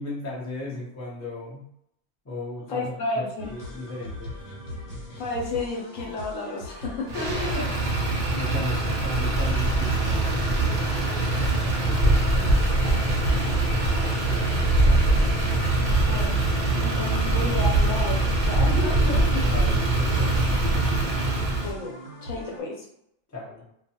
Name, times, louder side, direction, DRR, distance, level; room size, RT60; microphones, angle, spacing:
voice 1, 0.0-1.6 2.2-3.2 3.5-4.3 7.1-7.7 8.3-11.3 11.8-15.2 19.3-20.9 23.3-23.6, left 2 dB, 20° left, -6 dB, 0.5 m, -37 dB
voice 2, 2.7-3.5 5.2-7.6 16.0-16.4 16.8-19.5 21.6-21.9 22.2-22.8, left 2 dB, 70° left, -2 dB, 1.1 m, -31 dB
sound 1, 3.4-22.6, left 1 dB, 85° left, 1.3 m, -40 dB
Motor vehicle (road), 7.1-21.7, right 2 dB, 90° right, 0.4 m, -23 dB
2.4 x 2.3 x 2.8 m, 0.74 s
omnidirectional pair, 1.5 m